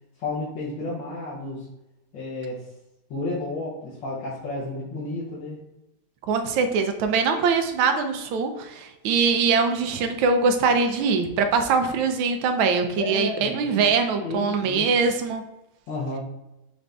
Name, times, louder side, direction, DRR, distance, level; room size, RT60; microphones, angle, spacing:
voice 1, 0.2-1.7 2.1-2.6 3.1-5.6 13.0-13.7 14.1-14.9 15.9-16.2, left 2 dB, 70° left, -8 dB, 1.7 m, -31 dB
voice 2, 6.3-15.4, right 5 dB, 75° right, 6 dB, 1.4 m, -22 dB
6.1 x 2.6 x 3.3 m, 0.96 s
omnidirectional pair, 2.3 m